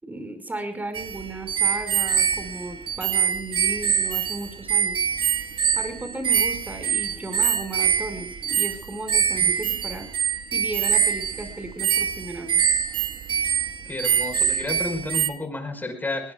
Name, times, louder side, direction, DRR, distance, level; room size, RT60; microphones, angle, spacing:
voice 1, 0.0-5.0 5.8-10.1 10.5-12.6, right 2 dB, 15° right, 8 dB, 5.5 m, -35 dB
sound 1, 0.9-15.3, right 8 dB, 50° right, 1.7 m, -24 dB
voice 2, 13.8-16.3, left 2 dB, 15° left, 7 dB, 5.1 m, -31 dB
21.0 x 20.5 x 2.4 m, 0.36 s
supercardioid pair, 80°, 11 cm